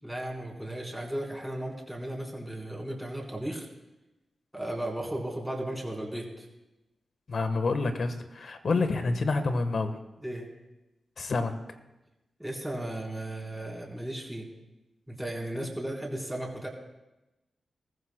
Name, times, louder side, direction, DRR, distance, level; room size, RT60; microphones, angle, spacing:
voice 1, 0.0-3.7 4.5-6.5 10.2-10.5 12.4-14.5 15.1-16.7, right 1 dB, 5° right, -2 dB, 4.0 m, -35 dB
voice 2, 7.3-10.0 11.2-11.5, left 3 dB, 65° left, 8 dB, 1.2 m, -28 dB
21.0 x 14.5 x 2.2 m, 0.99 s
cardioid pair, 55°, 0 cm